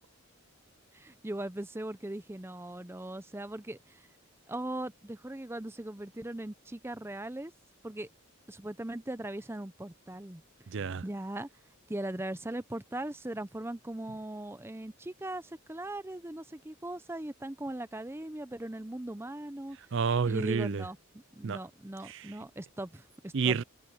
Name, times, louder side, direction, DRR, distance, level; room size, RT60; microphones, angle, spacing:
voice 1, 0.9-4.1 4.5-7.5 7.8-8.1 8.5-10.4 11.0-11.5 11.9-19.8 20.3-21.0 21.4-23.6, right 1 dB, 10° right, 0.6 m, -39 dB
voice 2, 10.7-11.0 19.9-20.8 21.4-21.6 22.1-22.3 23.3-23.6, right 5 dB, 55° right, 0.5 m, -29 dB
head